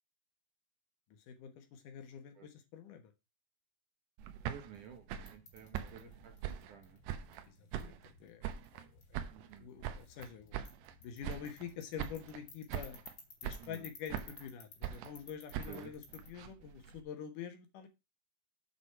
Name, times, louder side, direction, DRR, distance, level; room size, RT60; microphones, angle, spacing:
voice 1, 1.1-3.1 5.7-6.1 7.5-8.5 8.7-9.2 9.6-10.6 11.0-13.0 13.4-17.9, left 8 dB, 60° left, 6 dB, 2.5 m, -47 dB
sound 1, 4.2-7.5 7.7-8.9 9.1-11.0 11.2-11.7 12.0-12.4 12.7-13.1 13.4-14.5 14.8-17.0, right 10 dB, 90° right, 3.1 m, -42 dB
voice 2, 4.5-7.0 9.3-9.7 12.7-12.8 13.6-13.8 15.7-15.9, right 8 dB, 70° right, 5 dB, 2.0 m, -53 dB
sound 2, 4.6-16.3, left 4 dB, 45° left, 3.8 m, -58 dB
8.3 x 6.0 x 4.6 m, 0.24 s
omnidirectional pair, 4.8 m